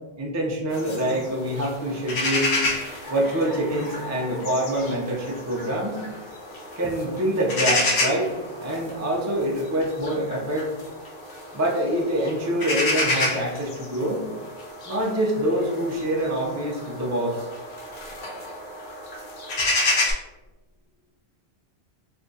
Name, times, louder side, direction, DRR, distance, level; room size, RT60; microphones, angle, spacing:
voice 1, 0.2-2.5 3.1-6.0 6.8-8.3 8.6-10.7 11.5-14.2 14.9-17.5, right 1 dB, 25° right, -2 dB, 0.3 m, -25 dB
sound 1, 0.7-20.1, left 2 dB, 75° left, 1.0 m, -30 dB
2.7 x 2.4 x 3.8 m, 1.1 s
omnidirectional pair, 1.1 m